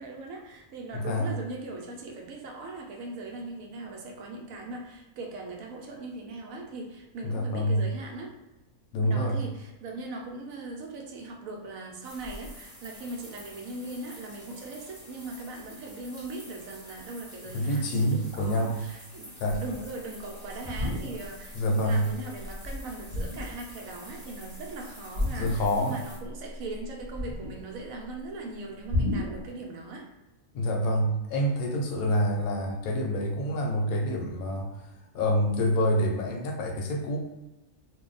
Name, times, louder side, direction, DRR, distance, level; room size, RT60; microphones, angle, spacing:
voice 1, 0.0-8.3 9.0-30.1, right 2 dB, 75° right, 1 dB, 1.0 m, -40 dB
voice 2, 0.9-1.3 7.2-7.8 8.9-9.4 17.5-18.8 19.4-19.6 21.5-22.1 25.4-26.0 30.5-34.8 35.1-37.2, equal, 75° left, 1 dB, 1.1 m, -27 dB
sound 1, 12.0-26.2, equal, 5° right, 1.1 m, -49 dB
sound 2, 19.6-19.9 20.5-21.5 21.9-22.1 22.4-23.7 25.1-26.0 26.2-27.9 28.9-29.5, left 1 dB, 40° right, 0.5 m, -32 dB
2.6 x 2.2 x 3.9 m, 1.0 s
omnidirectional pair, 1.5 m